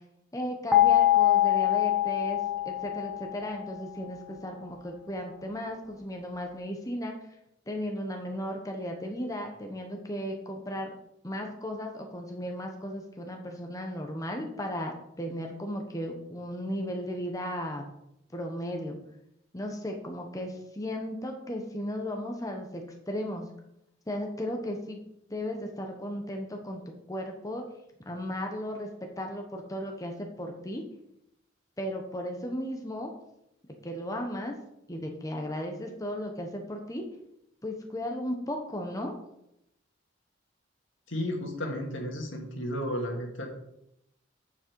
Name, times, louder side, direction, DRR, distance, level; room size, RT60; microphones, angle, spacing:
voice 1, 0.3-2.4 2.6-7.1 7.7-10.9 11.2-17.8 18.3-19.0 19.5-23.5 24.1-25.0 25.3-27.7 28.0-30.8 31.8-33.1 33.8-34.5 34.9-37.0 37.6-39.1, equal, 20° left, 2 dB, 1.2 m, -35 dB
sound 1, 0.7-3.7, left 13 dB, 5° right, 1.2 m, -24 dB
voice 2, 41.1-43.5, equal, 80° left, 1 dB, 2.3 m, -33 dB
8.7 x 7.6 x 4.7 m, 0.79 s
head